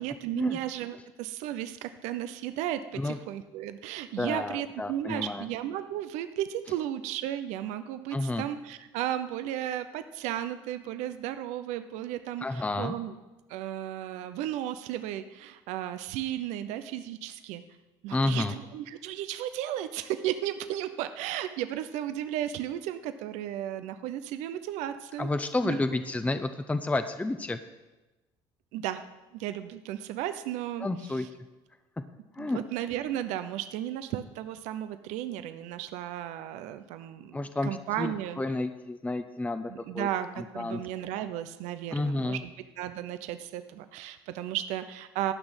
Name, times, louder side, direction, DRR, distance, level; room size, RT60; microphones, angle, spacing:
voice 1, 0.0-13.2 13.5-17.6 18.0-25.3 25.6-25.8 28.7-29.0 29.3-30.9 31.2-31.3 32.4-37.4 37.6-38.4 39.7-40.3 40.5-42.5 42.8-45.3, right 12 dB, 75° right, 10 dB, 0.7 m, -34 dB
voice 2, 4.2-5.5 8.1-8.5 12.4-13.0 18.1-18.5 25.2-27.6 30.8-31.3 32.0-32.1 32.3-32.6 37.3-40.1 40.3-40.8 41.9-42.4, left 2 dB, 10° left, 9 dB, 0.8 m, -30 dB
12.5 x 6.1 x 8.9 m, 1.1 s
supercardioid pair, 80°, 12 cm